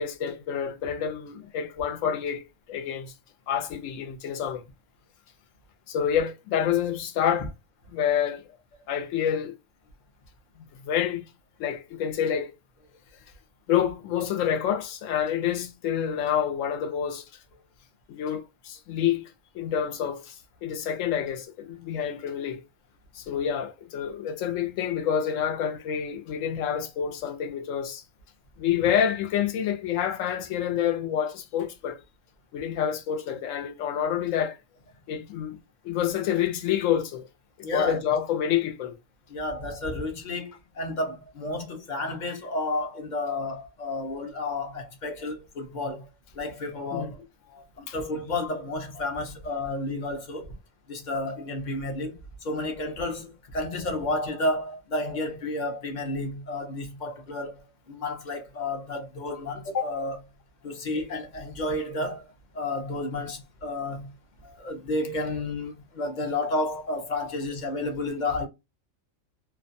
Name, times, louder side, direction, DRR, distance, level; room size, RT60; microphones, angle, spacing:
voice 1, 0.0-3.1 3.5-4.6 5.9-7.5 7.9-8.5 8.9-9.6 10.8-11.3 11.6-12.5 13.7-17.2 18.1-22.6 23.1-28.0 28.6-32.0 32.5-34.6 35.1-35.6 35.8-37.3 37.6-38.9 46.9-47.1 47.5-47.9 64.4-64.6 67.2-67.3, left 9 dB, 75° left, 1.0 m, -28 dB
voice 2, 37.6-38.0 39.3-46.1 46.3-47.2 47.8-50.5 50.9-60.3 60.6-62.2 62.5-64.2 64.6-68.5, left 2 dB, 45° left, 0.7 m, -31 dB
2.6 x 2.2 x 2.5 m
omnidirectional pair, 1.4 m